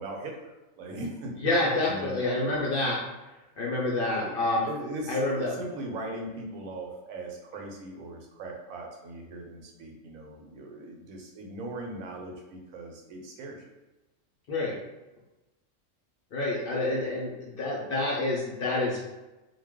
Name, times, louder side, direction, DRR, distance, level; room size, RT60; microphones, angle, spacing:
voice 1, 0.0-1.4 1.8-2.5 4.1-4.4 4.7-13.7, right 2 dB, 90° right, 1 dB, 1.0 m, -39 dB
voice 2, 1.4-3.0 3.6-4.7 5.1-5.5 14.5-14.8 16.3-19.1, left 2 dB, 60° left, -4 dB, 0.6 m, -28 dB
2.5 x 2.1 x 3.4 m, 1.0 s
omnidirectional pair, 1.4 m